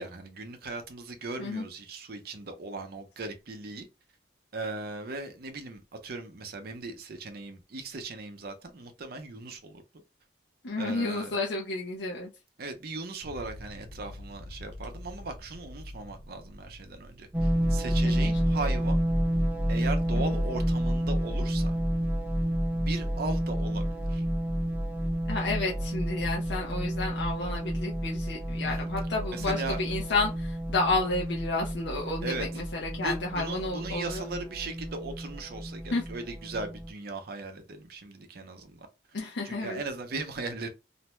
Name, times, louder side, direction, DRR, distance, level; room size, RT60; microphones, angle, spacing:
voice 1, 0.0-3.9 4.5-9.8 10.8-11.4 12.6-19.0 19.7-21.8 22.7-24.2 28.6-28.9 29.3-29.8 32.2-32.5 32.9-38.9 39.4-40.7, right 3 dB, 55° right, 0.6 m, -38 dB
voice 2, 10.6-12.3 18.0-18.3 20.1-20.2 25.3-34.2 35.9-36.0 39.1-39.8, left 3 dB, 75° left, 0.6 m, -31 dB
sound 1, 13.2-18.8, left 1 dB, 85° right, 0.7 m, -47 dB
sound 2, 17.3-36.9, equal, 10° right, 0.5 m, -30 dB
2.5 x 2.1 x 3.0 m
head